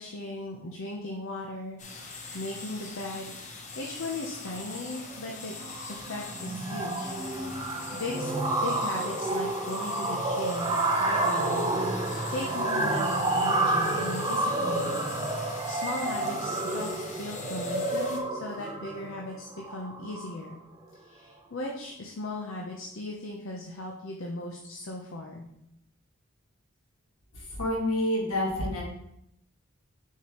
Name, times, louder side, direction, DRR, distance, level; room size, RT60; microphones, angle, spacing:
voice 1, 0.0-3.3 3.8-5.5 5.8-7.1 7.4-15.0 15.6-16.9 17.2-20.6 20.9-25.4, left 2 dB, 70° left, 0 dB, 0.7 m, -38 dB
sound 1, 1.8-18.2, left 3 dB, 35° left, 0.7 m, -42 dB
sound 2, 4.5-4.8 5.1-5.3 5.6-20.5, right 2 dB, 20° right, 0.5 m, -30 dB
voice 2, 27.3-28.8, left 1 dB, 85° left, -3 dB, 1.8 m, -28 dB
6.9 x 4.7 x 3.0 m, 0.78 s
head